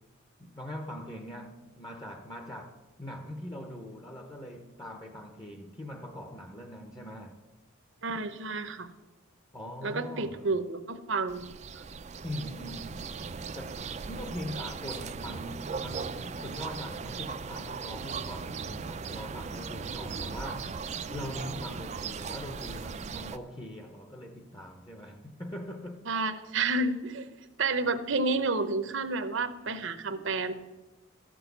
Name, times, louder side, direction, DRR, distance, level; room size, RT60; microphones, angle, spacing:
voice 1, 0.4-7.4 9.5-10.5 12.2-13.2 13.5-20.8 21.1-26.0, equal, 20° left, 0.9 m, -42 dB
voice 2, 8.0-8.9 9.8-11.5 26.1-27.2 27.6-30.5, right 3 dB, 60° right, 0.9 m, -30 dB
sound 1, 11.3-23.4, right 5 dB, 35° right, 0.4 m, -38 dB
13.5 x 6.2 x 8.1 m
head